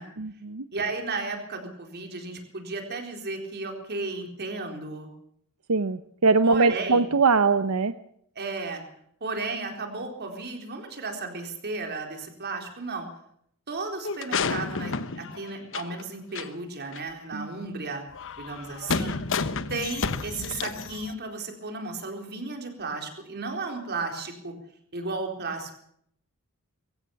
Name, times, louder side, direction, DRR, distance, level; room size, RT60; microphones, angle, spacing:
voice 1, 0.2-0.6 5.7-7.9 17.3-17.5, right 4 dB, 85° right, 11 dB, 0.8 m, -22 dB
voice 2, 0.7-5.1 6.4-7.1 8.4-8.8 9.2-13.1 13.7-18.0 18.4-19.2 19.7-24.5 24.9-25.7, right 3 dB, 50° right, 4 dB, 4.2 m, -34 dB
sound 1, 14.0-16.0 16.3-16.5 16.9-17.0 18.1-21.1, left 4 dB, 60° left, 1.2 m, -31 dB
22.5 x 16.0 x 7.1 m, 0.69 s
head